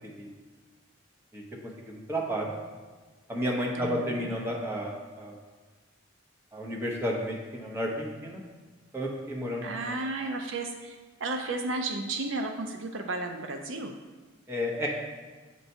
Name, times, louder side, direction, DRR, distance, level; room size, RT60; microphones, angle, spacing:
voice 1, 1.9-2.5 3.3-5.4 6.5-8.4 8.9-9.6 14.5-14.9, equal, 10° right, -3 dB, 0.8 m, -31 dB
voice 2, 3.7-4.3 9.6-13.9, right 2 dB, 70° right, 4 dB, 0.5 m, -33 dB
8.0 x 4.5 x 2.7 m, 1.3 s
head